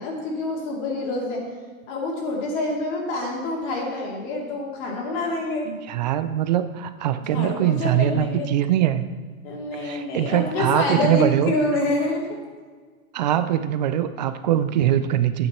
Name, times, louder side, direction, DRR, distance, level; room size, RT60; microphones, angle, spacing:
voice 1, 0.0-1.4 1.9-5.7 7.3-8.5 9.4-12.4, left 2 dB, 40° left, -2 dB, 2.7 m, -27 dB
voice 2, 5.7-9.0 9.8-11.5 13.1-15.5, right 11 dB, 35° right, 11 dB, 0.4 m, -22 dB
10.5 x 9.1 x 4.3 m, 1.5 s
hypercardioid pair, 145°, 43 cm